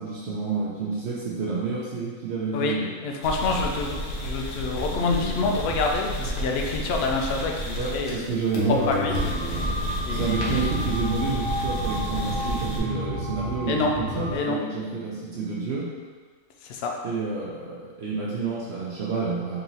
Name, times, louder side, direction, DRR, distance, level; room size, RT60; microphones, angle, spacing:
voice 1, 0.0-3.0 7.8-9.1 10.1-15.9 17.0-19.6, right 4 dB, 55° right, -6 dB, 0.8 m, -29 dB
voice 2, 2.5-8.2 8.9-9.2 10.1-10.6 13.7-13.9 14.3-14.6 16.6-16.9, left 3 dB, 70° left, 1 dB, 0.6 m, -27 dB
sound 1, 3.2-8.3 8.5-12.8, equal, 85° left, 1.4 m, -31 dB
sound 2, 8.8-14.4, equal, 75° right, 1.5 m, -31 dB
3.9 x 2.9 x 3.9 m, 1.4 s
omnidirectional pair, 1.6 m